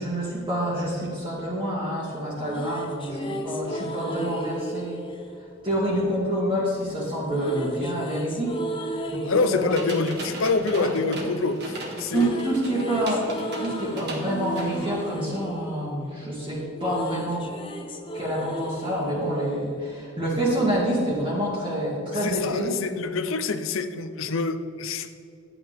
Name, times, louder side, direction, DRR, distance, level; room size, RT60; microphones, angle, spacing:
voice 1, 0.0-5.0 5.6-8.6 8.9-9.8 10.8-10.9 12.1-13.3 13.6-17.4 18.1-22.7, right 1 dB, 25° right, -7 dB, 1.9 m, -27 dB
sound 1, 2.3-6.4 7.3-11.5 11.8-20.3, equal, 25° left, 0.7 m, -35 dB
voice 2, 9.2-12.3 22.1-25.1, left 4 dB, 75° left, 10 dB, 0.6 m, -26 dB
sound 2, 9.7-15.1, right 2 dB, 55° right, 1.8 m, -38 dB
12.0 x 8.8 x 3.6 m, 2.5 s
head